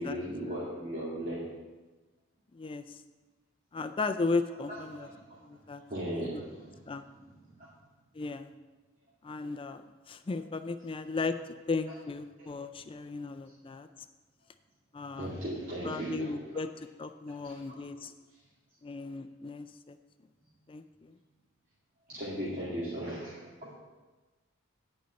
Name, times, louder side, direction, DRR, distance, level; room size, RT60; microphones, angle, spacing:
voice 1, 0.0-1.4 4.5-5.4 5.9-6.8 7.1-7.7 11.9-12.0 12.4-12.5 15.2-16.6 17.3-17.4 17.7-17.8 22.1-23.7, equal, 40° right, -9 dB, 2.4 m, -38 dB
voice 2, 2.5-3.0 3.7-5.1 5.4-5.8 6.1-6.4 6.9-7.1 8.1-8.5 9.2-11.4 11.7-13.9 14.9-15.3 15.8-18.1 18.8-20.0 20.7-21.1, left 3 dB, 25° left, 9 dB, 0.4 m, -36 dB
9.4 x 5.4 x 8.2 m, 1.2 s
head